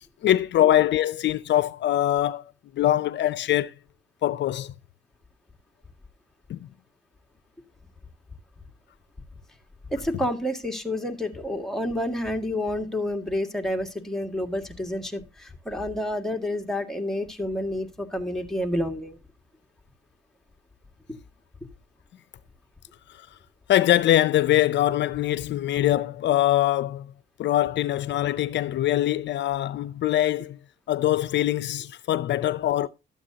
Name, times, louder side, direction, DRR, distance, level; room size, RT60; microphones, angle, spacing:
voice 1, 0.2-2.4 2.7-3.7 4.2-4.7 6.5-6.6 23.7-27.1 27.4-30.6 30.9-32.9, left 13 dB, 65° left, 0.5 m, -23 dB
voice 2, 9.9-19.2, left 1 dB, ahead, 1.9 m, -29 dB
13.0 x 8.7 x 2.7 m
cardioid pair, 90°, 20 cm